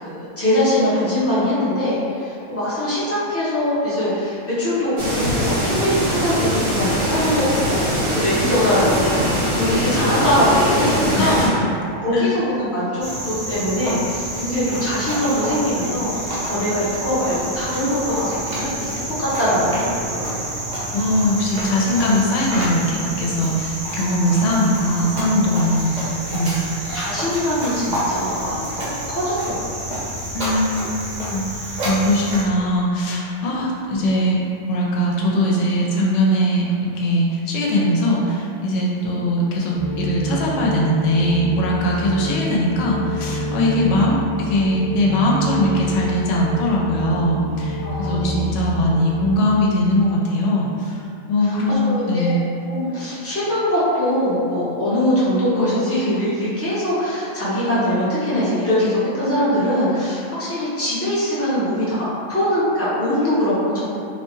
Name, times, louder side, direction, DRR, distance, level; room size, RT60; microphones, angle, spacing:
voice 1, 0.0-11.4 12.0-20.7 23.4-23.5 26.9-29.9 33.5-33.6 41.9-42.0 47.8-48.4 51.4-52.4 52.7-63.9, left 1 dB, 15° left, -11 dB, 0.6 m, -22 dB
sound 1, 5.0-11.5, equal, 70° right, 1.0 m, -22 dB
voice 2, 11.2-11.7 12.1-12.3 20.9-26.6 30.3-34.4 34.7-52.4, equal, 75° left, -3 dB, 0.9 m, -20 dB
Cricket, 13.0-32.4, right 1 dB, 45° right, 0.6 m, -28 dB
sound 2, 39.7-49.4, left 1 dB, 40° left, 1.1 m, -27 dB
2.7 x 2.2 x 3.0 m, 2.5 s
omnidirectional pair, 1.3 m